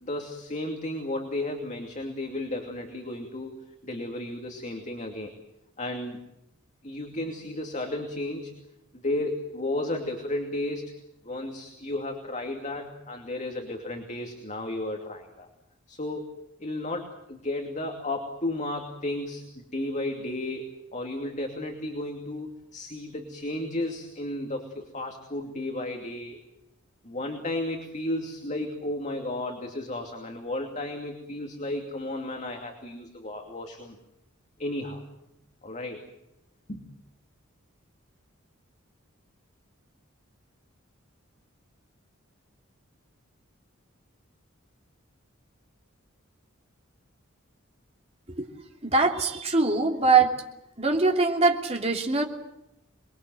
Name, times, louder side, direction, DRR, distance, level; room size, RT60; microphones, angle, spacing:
voice 1, 0.0-3.6 3.8-5.3 5.8-6.2 6.8-8.5 8.9-10.9 11.2-15.5 15.9-26.4 27.0-34.0 34.6-35.0 35.6-36.0 36.7-36.9, left 1 dB, 35° left, 3 dB, 2.6 m, -33 dB
voice 2, 48.8-50.4 50.8-52.2, right 3 dB, 30° right, 2 dB, 3.1 m, -22 dB
28.0 x 21.5 x 7.8 m, 0.84 s
head